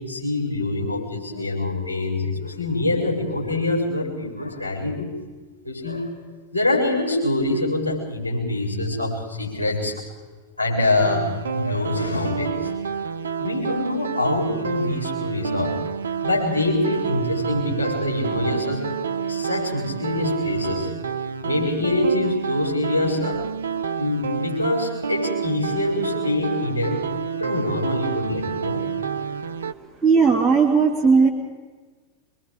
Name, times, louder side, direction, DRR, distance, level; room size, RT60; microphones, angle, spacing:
voice 1, 0.0-5.1 5.6-6.1 6.5-9.9 10.6-12.7 13.4-15.9 16.2-18.9 19.3-20.9 21.4-23.4 24.0-27.0 27.4-28.9, left 2 dB, 80° left, -3 dB, 7.8 m, -25 dB
sound 1, 11.0-29.7, right 6 dB, 70° right, 0.7 m, -29 dB
voice 2, 30.0-31.3, right 5 dB, 5° right, -4 dB, 2.9 m, -16 dB
25.0 x 23.0 x 5.2 m, 1.4 s
figure-of-eight pair, 90°, 0 cm